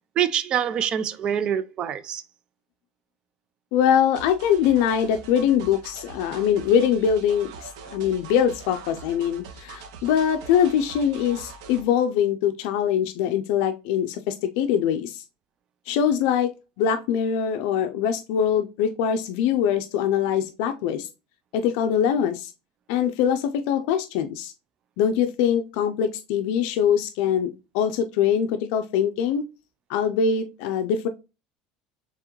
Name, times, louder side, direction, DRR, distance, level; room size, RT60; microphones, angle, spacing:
voice 1, 0.2-2.2, right 9 dB, 30° right, 0.4 m, -25 dB
voice 2, 3.7-15.2 15.9-16.5 16.8-21.1 21.5-22.5 22.9-24.5 25.0-29.4 29.9-31.1, left 8 dB, 65° left, 0.5 m, -23 dB
sound 1, 4.1-11.8, right 5 dB, 90° right, 0.8 m, -43 dB
4.6 x 3.5 x 3.0 m
cardioid pair, 160°, 3 cm